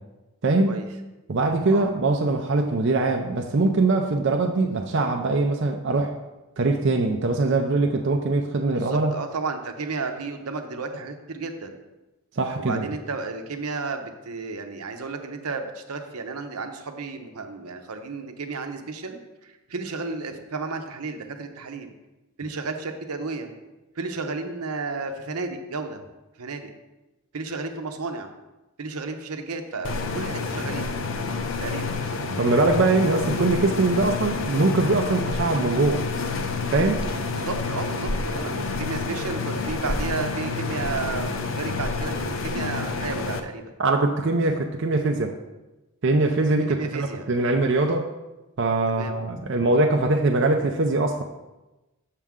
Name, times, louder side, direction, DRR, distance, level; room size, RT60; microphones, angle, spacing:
voice 1, 0.4-0.8 1.3-6.2 6.6-9.1 12.4-12.9 32.3-36.1 36.7-37.0 43.8-45.3 46.0-48.1 48.6-51.2, right 2 dB, 55° right, 3 dB, 0.5 m, -22 dB
voice 2, 8.7-11.8 12.6-21.9 22.4-23.5 24.0-26.0 26.4-26.7 27.3-28.3 28.8-30.9 31.6-32.0 37.2-43.7 46.7-47.3 48.9-49.2, right 4 dB, 90° right, 6 dB, 0.8 m, -33 dB
sound 1, 29.8-43.4, left 4 dB, 60° left, 0.6 m, -28 dB
7.3 x 6.6 x 3.6 m, 1.1 s
head